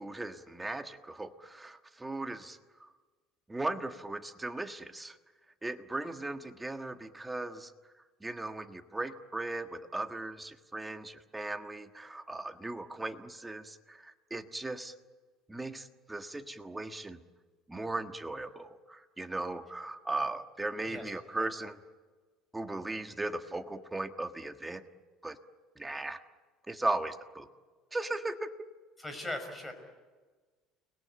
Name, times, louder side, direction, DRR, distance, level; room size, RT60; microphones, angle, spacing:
voice 1, 0.0-2.6 3.5-5.2 5.6-7.7 8.2-14.9 15.5-17.2 17.7-21.8 22.5-24.8 25.2-25.4 25.8-26.2 26.7-27.5 27.9-28.5, right 2 dB, 10° right, 6 dB, 1.5 m, -37 dB
voice 2, 29.0-29.7, left 1 dB, 10° left, 6 dB, 5.7 m, -39 dB
30.0 x 21.0 x 8.9 m, 1.4 s
cardioid pair, 140°, 0 cm